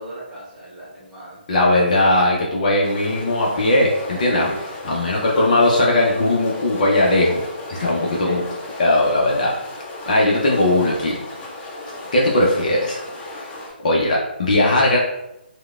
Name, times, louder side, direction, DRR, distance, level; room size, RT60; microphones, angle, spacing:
voice 1, 0.0-1.4 4.3-4.6 7.7-8.4, equal, 5° right, -10 dB, 1.2 m, -36 dB
voice 2, 1.5-4.5 4.8-7.4 7.8-8.4 8.8-9.5 10.1-11.2 12.1-13.0 13.8-15.0, left 1 dB, 45° left, -3 dB, 0.6 m, -18 dB
sound 1, 2.8-13.7, left 2 dB, 15° left, 1.1 m, -36 dB
4.6 x 2.1 x 2.3 m, 0.88 s
figure-of-eight pair, 140°, 6 cm